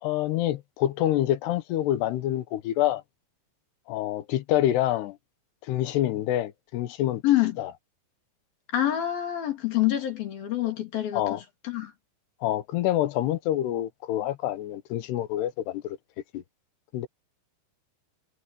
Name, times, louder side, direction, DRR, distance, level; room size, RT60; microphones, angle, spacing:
voice 1, 0.0-3.0 3.9-5.2 5.7-7.2 7.6-7.7 11.1-11.4 12.4-16.0 16.3-16.4 16.9-17.1, left 13 dB, 80° left, 3.2 m, -27 dB
voice 2, 7.2-7.6 8.7-11.4 11.6-11.9, left 13 dB, 65° left, 4.6 m, -26 dB
omnidirectional pair, 4.8 m